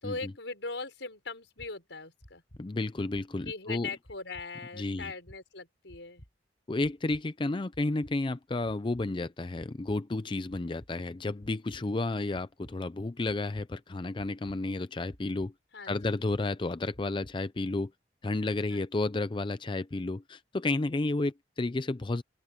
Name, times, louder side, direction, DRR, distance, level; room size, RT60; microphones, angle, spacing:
voice 1, 0.0-2.4 3.5-6.2 15.7-16.2 18.7-18.9, left 3 dB, 85° left, 5.5 m, -40 dB
sound 1, 1.6-1.7 2.2-2.6 3.1-3.5 4.0-4.5 5.0-5.4 5.9-6.3 6.8-7.2 7.7-8.1 8.6-9.1 9.6-10.0 10.5-10.9 11.4-11.8 12.3-12.7 13.2-13.7 14.2-14.6 15.1-15.5 16.0-16.4 16.9-17.3, equal, 60° left, 5.0 m, -52 dB
voice 2, 2.6-3.9 4.8-5.1 6.7-15.5 15.9-17.9 18.2-22.2, left 2 dB, 25° left, 0.5 m, -32 dB
open air
head